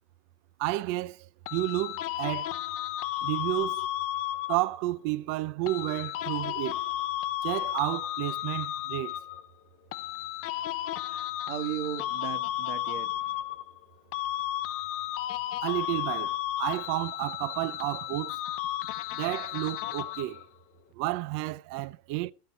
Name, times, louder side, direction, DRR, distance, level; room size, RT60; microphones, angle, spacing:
voice 1, 0.6-2.6 3.2-3.9 4.5-6.8 7.4-9.1 15.6-18.4 19.1-20.4 20.9-22.3, right 18 dB, 40° right, 0.6 m, -31 dB
sound 1, 1.5-4.8 5.7-9.5 9.9-13.8 14.1-20.5, left 14 dB, 30° left, 0.6 m, -33 dB
voice 2, 11.0-13.2, right 12 dB, 60° right, 1.7 m, -37 dB
15.5 x 5.7 x 5.8 m
supercardioid pair, 145°, 44 cm